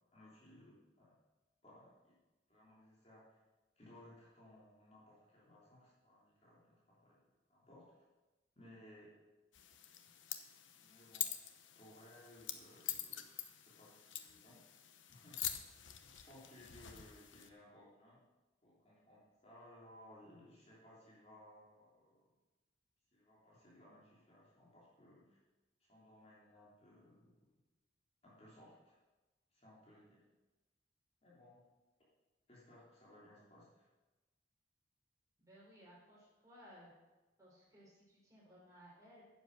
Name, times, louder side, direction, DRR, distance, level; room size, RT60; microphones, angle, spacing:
voice 1, 0.1-1.1 1.6-2.2 2.5-3.4 3.8-7.2 7.5-8.0 8.5-9.1 10.8-11.3 11.7-14.6 15.1-15.4 16.0-18.2 18.6-22.3 23.1-25.4 25.9-27.4 28.2-29.0 29.5-30.3 31.2-31.6 32.5-33.9, left 1 dB, 30° left, -6 dB, 3.1 m, -61 dB
sound 1, 9.5-17.5, left 11 dB, 80° left, 0.9 m, -46 dB
voice 2, 35.4-36.9 37.4-39.2, equal, 15° right, -6 dB, 4.8 m, -60 dB
10.0 x 7.9 x 6.6 m, 1.1 s
head